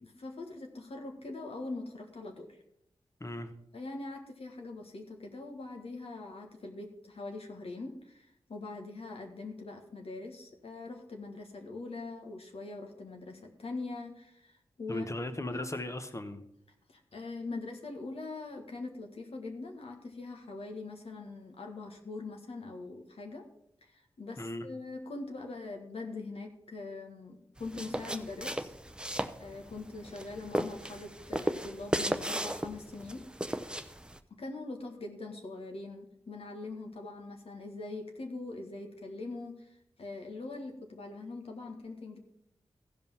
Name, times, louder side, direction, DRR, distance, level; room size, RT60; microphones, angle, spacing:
voice 1, 0.0-2.6 3.7-15.1 15.5-15.7 16.9-23.5 23.8-28.7 29.4-33.2 34.4-42.2, left 3 dB, 65° left, 1.6 m, -42 dB
voice 2, 14.9-16.4 24.4-24.6, left 1 dB, 30° left, 1.2 m, -37 dB
sound 1, 27.6-34.2, right 1 dB, 10° right, 0.7 m, -36 dB
15.0 x 5.2 x 5.6 m
cardioid pair, 50°, 11 cm